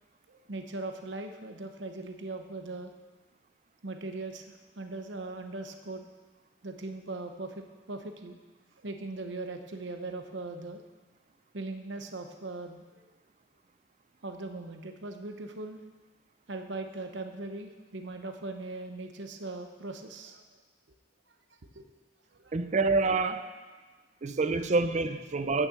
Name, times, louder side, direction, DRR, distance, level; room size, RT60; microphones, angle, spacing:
voice 1, 0.3-2.9 3.8-6.0 6.6-8.4 8.8-10.8 11.5-13.1 14.2-15.8 16.5-20.4 21.7-21.9 22.3-22.6, right 2 dB, 65° right, 6 dB, 0.9 m, -40 dB
voice 2, 22.5-23.5 24.2-25.7, right 3 dB, 40° right, 10 dB, 0.5 m, -27 dB
9.2 x 6.4 x 7.6 m, 1.3 s
head